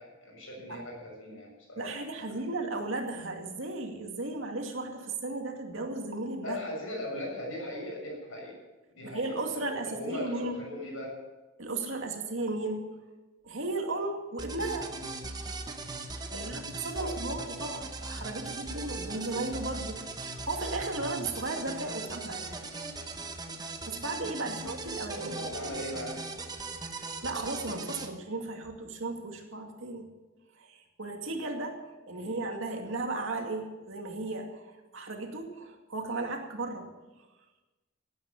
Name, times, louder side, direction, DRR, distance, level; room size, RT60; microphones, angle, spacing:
voice 1, 0.0-2.0 2.4-2.5 6.4-8.6 9.0-11.1 14.9-15.1 16.3-16.5 17.0-17.5 21.9-22.0 24.5-26.2 32.1-32.4, left 1 dB, 75° left, -1 dB, 6.9 m, -40 dB
voice 2, 1.8-6.6 9.0-10.6 11.6-12.8 13.4-14.9 16.3-22.6 23.9-25.3 27.0-30.1 30.6-31.8 32.1-36.9, right 2 dB, 70° right, 3 dB, 2.3 m, -35 dB
sound 1, 14.4-28.1, right 3 dB, 20° right, 1.0 m, -39 dB
16.0 x 9.5 x 7.1 m, 1.1 s
head